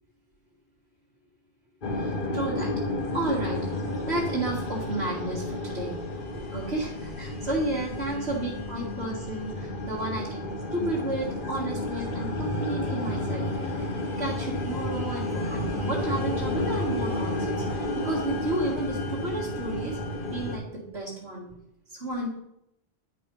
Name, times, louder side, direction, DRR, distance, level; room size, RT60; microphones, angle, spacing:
sound 1, 1.8-20.6, left 1 dB, 55° left, 1.4 m, -31 dB
voice 1, 1.9-2.7 3.1-5.9 6.3-13.9 14.2-20.0 20.3-21.5 21.9-22.3, right 1 dB, 85° right, -8 dB, 2.5 m, -32 dB
10.5 x 4.9 x 5.4 m, 0.79 s
omnidirectional pair, 1.1 m